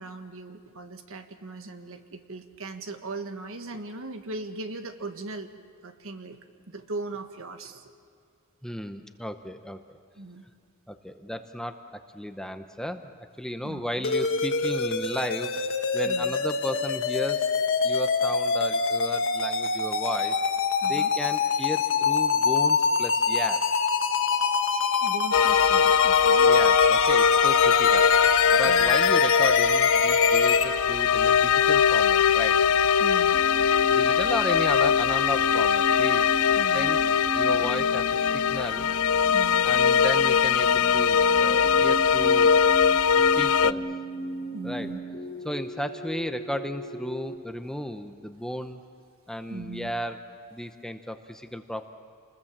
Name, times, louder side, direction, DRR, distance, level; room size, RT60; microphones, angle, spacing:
voice 1, 0.0-5.5 5.8-6.4 6.7-7.8 10.2-10.5 13.6-14.1 16.0-16.3 20.8-21.1 25.0-26.5 28.6-28.9 33.0-33.4 36.5-36.9 39.3-39.7 44.5-45.0 49.5-49.9, right 2 dB, 65° right, 7 dB, 1.7 m, -39 dB
voice 2, 8.6-10.0 10.9-13.1 13.4-15.5 15.9-17.5 17.8-20.4 20.9-23.6 26.4-28.1 28.5-32.6 33.9-36.3 36.7-38.9 39.6-42.5 43.1-43.9 44.6-44.9 45.4-48.8 49.3-50.2 50.5-51.9, equal, 5° left, 7 dB, 0.8 m, -34 dB
sound 1, 14.0-30.6, left 5 dB, 60° left, 1.5 m, -25 dB
sound 2, 25.3-43.7, left 7 dB, 75° left, 0.5 m, -21 dB
sound 3, 33.3-47.4, right 1 dB, 40° left, 2.2 m, -36 dB
29.0 x 21.0 x 7.4 m, 2.3 s
head